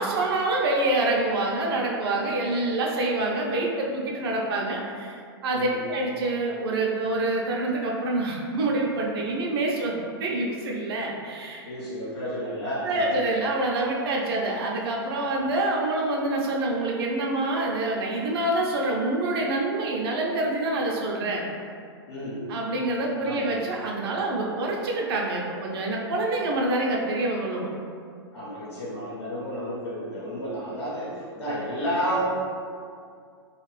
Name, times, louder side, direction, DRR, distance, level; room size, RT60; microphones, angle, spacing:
voice 1, 0.0-9.9 10.2-11.6 12.8-21.4 22.5-27.7, right 2 dB, 65° right, -2 dB, 0.6 m, -26 dB
voice 2, 11.6-13.1 22.1-22.4 23.2-23.5 28.3-32.3, equal, 85° left, -8 dB, 0.9 m, -31 dB
2.5 x 2.4 x 3.2 m, 2.2 s
hypercardioid pair, 115°, 14 cm